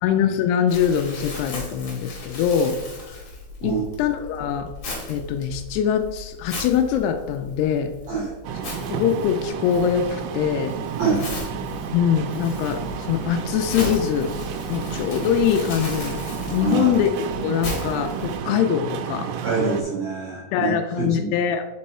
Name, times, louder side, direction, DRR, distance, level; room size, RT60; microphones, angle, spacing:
voice 1, 0.0-2.8 3.6-4.7 5.1-7.9 8.9-10.7 11.9-14.3 14.7-16.2 16.5-17.1 17.4-19.3 20.5-21.7, left 8 dB, 85° left, 5 dB, 2.6 m, -23 dB
Crumpling crinkling, 0.7-18.4, left 2 dB, 50° left, 1.9 m, -37 dB
sound 1, 8.4-19.8, right 7 dB, 80° right, 2.5 m, -31 dB
voice 2, 11.0-11.3 16.6-16.9 19.4-20.7 21.0-21.3, right 5 dB, 65° right, -6 dB, 1.8 m, -25 dB
5.3 x 4.7 x 4.2 m, 1.1 s
omnidirectional pair, 4.7 m